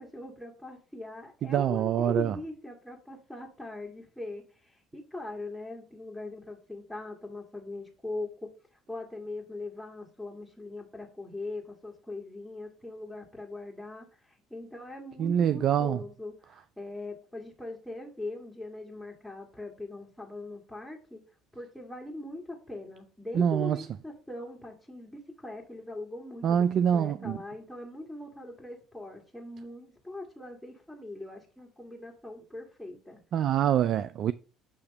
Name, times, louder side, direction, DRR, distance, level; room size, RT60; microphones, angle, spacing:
voice 1, 0.0-21.2 21.5-26.7 26.9-33.2, left 2 dB, 5° left, 1.8 m, -41 dB
voice 2, 1.5-2.4 15.2-16.0 23.3-23.9 26.4-27.4 33.3-34.3, right 9 dB, 60° right, 0.3 m, -25 dB
8.5 x 2.9 x 5.2 m
hypercardioid pair, 65°, 0 cm